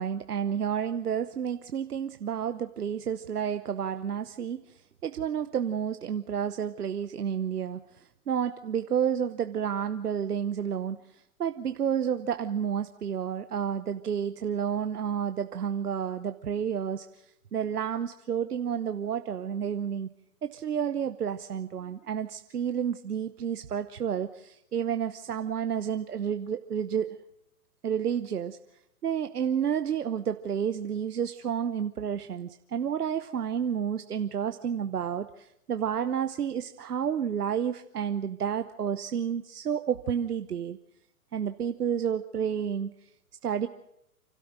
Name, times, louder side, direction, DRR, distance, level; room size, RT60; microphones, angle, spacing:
voice 1, 0.0-4.6 5.0-7.8 8.3-11.0 11.4-17.0 17.5-20.1 20.4-27.2 27.8-28.6 29.0-40.8 41.3-42.9 43.4-43.7, right 8 dB, 85° right, 9 dB, 1.0 m, -30 dB
28.5 x 13.0 x 7.7 m, 0.77 s
hypercardioid pair, 120°, 45 cm